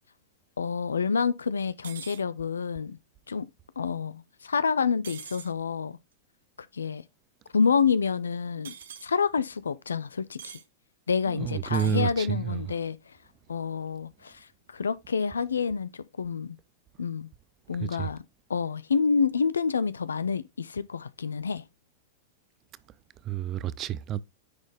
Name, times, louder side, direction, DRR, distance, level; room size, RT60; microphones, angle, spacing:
voice 1, 0.6-3.0 3.3-3.5 3.8-6.0 6.7-7.0 7.5-8.7 9.0-10.6 11.1-13.0 13.5-16.6 17.0-17.3 17.7-18.2 18.5-21.6, left 5 dB, 80° left, 0.5 m, -28 dB
sound 1, 1.8-2.2 5.0-5.5 8.6-9.1 10.4-10.6 11.6-12.0, right 8 dB, 70° right, 0.8 m, -43 dB
voice 2, 11.3-12.6 17.8-18.1 23.2-24.2, right 10 dB, 35° right, 0.5 m, -29 dB
9.7 x 4.2 x 3.4 m
figure-of-eight pair, 95°, 0 cm